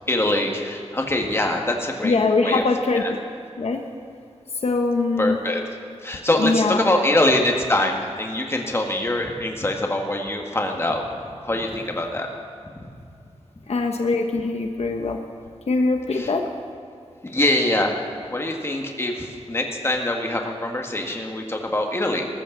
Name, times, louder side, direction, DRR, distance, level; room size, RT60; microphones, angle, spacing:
voice 1, 0.1-2.2 2.4-2.6 2.9-3.1 5.2-5.6 6.0-12.3 16.1-16.3 17.2-17.9 18.3-22.3, left 1 dB, 20° left, 2 dB, 1.7 m, -24 dB
voice 2, 2.0-3.0 3.6-3.8 4.6-5.4 6.4-6.8 13.7-15.2 15.7-16.4, left 3 dB, 70° left, 3 dB, 1.0 m, -22 dB
20.0 x 13.5 x 3.9 m, 2.5 s
wide cardioid pair, 110°, 11 cm